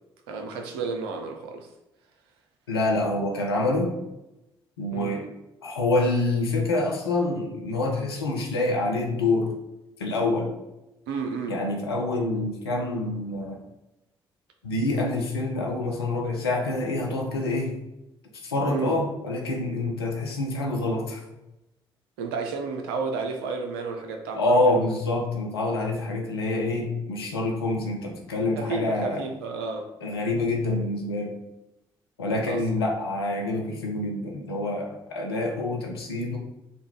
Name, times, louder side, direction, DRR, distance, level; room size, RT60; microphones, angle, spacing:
voice 1, 0.3-1.7 4.9-5.3 11.1-11.6 18.7-19.0 22.2-24.8 28.6-29.9 32.5-32.6, right 4 dB, 75° right, 4 dB, 0.5 m, -32 dB
voice 2, 2.7-4.0 4.8-5.2 5.6-9.5 10.0-10.5 11.5-13.6 14.6-17.7 18.4-21.2 24.4-29.2 30.0-31.3 32.2-36.4, left 2 dB, 85° left, 0 dB, 0.6 m, -26 dB
5.0 x 2.2 x 3.7 m, 0.94 s
figure-of-eight pair, 40°, 13 cm